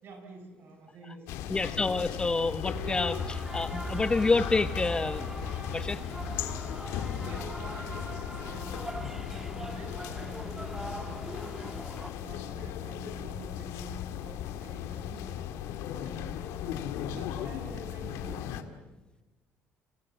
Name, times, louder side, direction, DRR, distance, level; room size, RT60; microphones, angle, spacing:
voice 1, 0.0-1.7 6.8-11.7 12.2-16.5 17.1-18.7, right 2 dB, 55° right, 6 dB, 7.4 m, -47 dB
sound 1, 1.3-18.6, left 10 dB, 85° left, 2.0 m, -37 dB
voice 2, 1.5-6.0, left 3 dB, 20° left, 12 dB, 1.0 m, -28 dB
sound 2, 2.7-12.1, right 1 dB, 5° right, 2.5 m, -40 dB
29.5 x 27.5 x 7.3 m, 1.1 s
cardioid pair, 115°, 5 cm